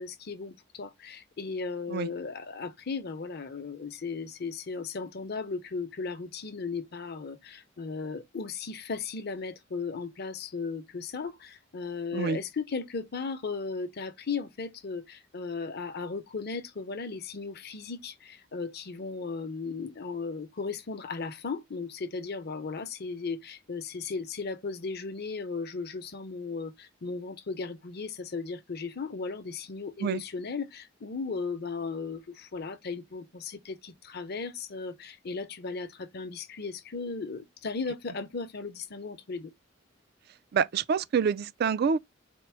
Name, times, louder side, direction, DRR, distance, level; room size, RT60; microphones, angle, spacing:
voice 1, 0.0-39.5, left 4 dB, 55° left, 0.7 m, -36 dB
voice 2, 40.5-42.0, right 6 dB, 55° right, 0.3 m, -26 dB
4.4 x 2.0 x 4.4 m
head